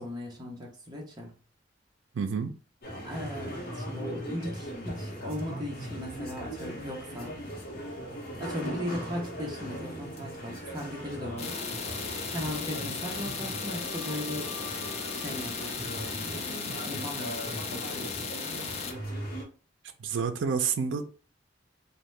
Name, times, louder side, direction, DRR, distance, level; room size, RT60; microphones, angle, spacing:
voice 1, 0.0-1.3 3.0-7.4 8.4-11.6 12.3-14.5 15.1-16.0 16.3-18.4, left 1 dB, 20° right, 0.7 m, -38 dB
voice 2, 2.1-2.5 20.0-21.0, right 6 dB, 85° right, 0.4 m, -28 dB
sound 1, 2.8-19.4, equal, 50° left, 0.8 m, -39 dB
sound 2, 11.4-18.9, left 5 dB, 35° left, 0.4 m, -36 dB
2.7 x 2.1 x 3.2 m
head